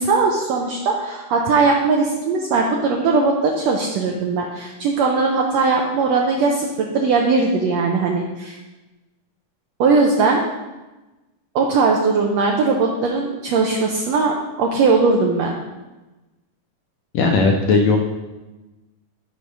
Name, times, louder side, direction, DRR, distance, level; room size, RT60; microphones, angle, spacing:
voice 1, 0.0-8.6 9.8-10.4 11.5-15.5, right 4 dB, 75° right, 0 dB, 1.6 m, -19 dB
voice 2, 17.1-18.0, left 4 dB, 80° left, 2 dB, 1.6 m, -16 dB
6.6 x 5.9 x 5.3 m, 1.1 s
omnidirectional pair, 3.8 m